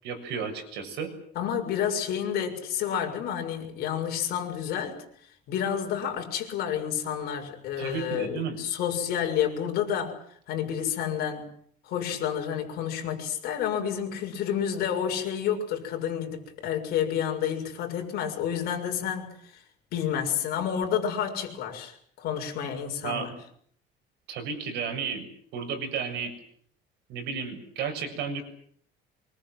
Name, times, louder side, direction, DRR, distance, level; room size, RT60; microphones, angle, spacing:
voice 1, 0.0-1.1 7.8-8.6 23.0-23.3 24.3-25.3 25.5-26.3 27.1-28.4, right 6 dB, 65° right, 6 dB, 7.3 m, -33 dB
voice 2, 1.3-5.0 5.5-10.2 10.5-11.5 11.8-19.6 19.9-23.4, left 9 dB, 55° left, 3 dB, 6.7 m, -30 dB
25.5 x 24.0 x 7.9 m, 0.64 s
cardioid pair, 175°, 19 cm